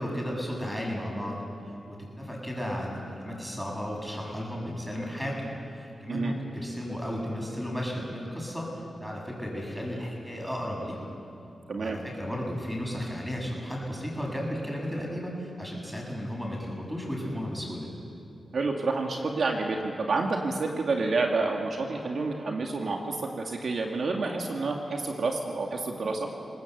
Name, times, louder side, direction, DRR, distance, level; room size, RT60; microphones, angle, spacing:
voice 1, 0.0-1.4 1.7-8.7 9.0-11.0 11.8-17.9, equal, 5° right, -1 dB, 7.6 m, -34 dB
voice 2, 11.7-12.0 18.5-26.3, right 3 dB, 65° right, 1 dB, 2.1 m, -29 dB
27.0 x 19.5 x 8.0 m, 2.8 s
cardioid pair, 85°, 0 cm